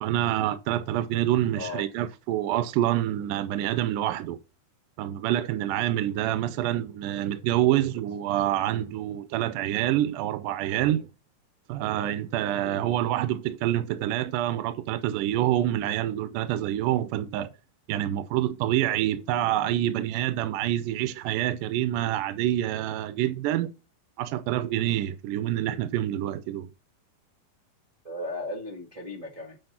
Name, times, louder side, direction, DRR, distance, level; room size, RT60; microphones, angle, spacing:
voice 1, 0.0-4.4 5.0-11.1 11.7-17.5 17.9-23.7 24.2-26.7, right 13 dB, 80° right, 2.2 m, -27 dB
voice 2, 1.5-1.8 7.7-7.8 12.6-12.9 19.6-19.9 28.0-29.6, left 2 dB, 45° right, 0.4 m, -37 dB
7.8 x 4.8 x 5.6 m
omnidirectional pair, 4.0 m